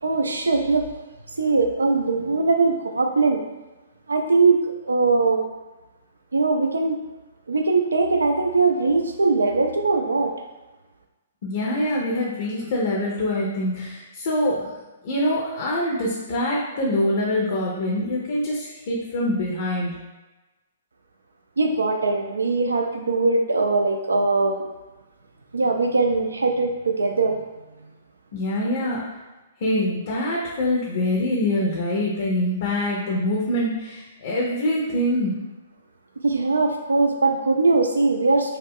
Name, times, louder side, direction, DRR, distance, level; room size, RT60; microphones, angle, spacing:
voice 1, 0.0-0.9 1.4-3.4 4.1-5.5 6.3-7.0 7.5-10.3 21.6-24.7 25.5-27.4 36.2-38.6, right 3 dB, 80° right, 4 dB, 0.4 m, -21 dB
voice 2, 11.4-14.7 15.0-19.9 28.3-29.0 29.6-35.3, left 1 dB, 50° left, -4 dB, 0.6 m, -24 dB
2.3 x 2.1 x 3.5 m, 1.1 s
figure-of-eight pair, 120°, 0 cm